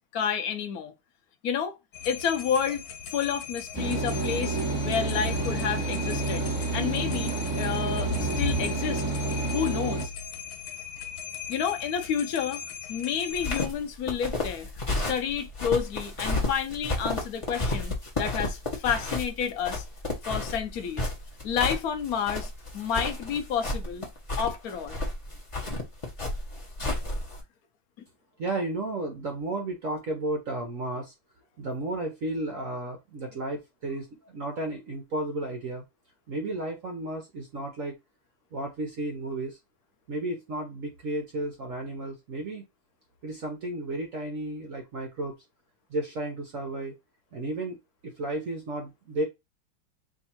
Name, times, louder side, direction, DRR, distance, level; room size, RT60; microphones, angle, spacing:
voice 1, 0.1-0.9 1.4-1.8 2.0-2.8 3.1-6.5 6.7-9.0 9.5-10.1 11.5-12.6 12.9-14.7 15.1-19.8 20.3-21.1 21.4-24.0 24.4-25.0, left 7 dB, 65° left, 0.9 m, -30 dB
sound 1, 1.9-13.7, left 9 dB, 85° left, 1.8 m, -39 dB
sound 2, 3.7-10.1, right 2 dB, 15° left, 1.5 m, -29 dB
sound 3, 13.3-27.4, left 2 dB, 30° left, 0.5 m, -32 dB
voice 2, 28.4-31.1 31.6-35.8 36.3-37.9 38.5-39.6 40.1-42.7 43.2-45.3 45.9-47.0 47.3-49.2, right 2 dB, 70° right, 0.7 m, -33 dB
3.6 x 2.6 x 4.3 m
omnidirectional pair, 2.4 m